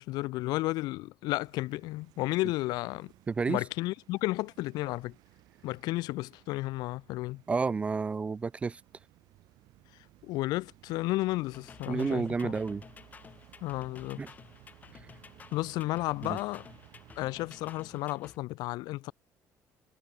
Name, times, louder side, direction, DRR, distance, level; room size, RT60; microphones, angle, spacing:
voice 1, 0.0-3.1 3.5-5.1 5.6-7.4 10.2-12.5 13.6-14.2 15.5-16.7 17.2-19.1, left 19 dB, 80° left, 1.1 m, -33 dB
sound 1, 1.4-18.0, right 17 dB, 70° right, 4.3 m, -59 dB
voice 2, 3.3-3.6 7.5-8.8 11.9-12.8 14.2-14.3 16.2-16.4, right 4 dB, 20° right, 0.5 m, -30 dB
sound 2, 11.5-18.4, left 5 dB, 25° left, 2.4 m, -53 dB
cardioid pair, 165°, 7 cm